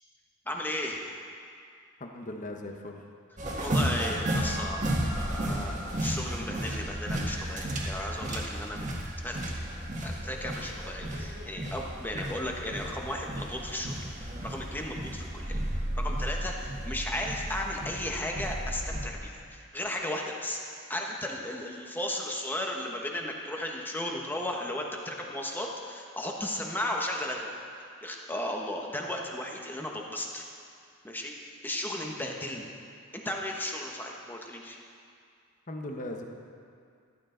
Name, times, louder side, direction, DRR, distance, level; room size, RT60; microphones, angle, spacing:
voice 1, 0.5-1.1 3.6-8.8 9.2-9.4 10.0-27.5 28.0-30.4 31.0-31.3 31.6-32.7 33.1-34.8, left 1 dB, 10° left, 0 dB, 1.2 m, -35 dB
voice 2, 2.0-3.0 35.7-36.2, left 1 dB, 40° left, 3 dB, 1.1 m, -38 dB
sound 1, 3.4-19.1, right 1 dB, 35° right, 1.7 m, -33 dB
14.0 x 12.5 x 3.9 m, 2.3 s
head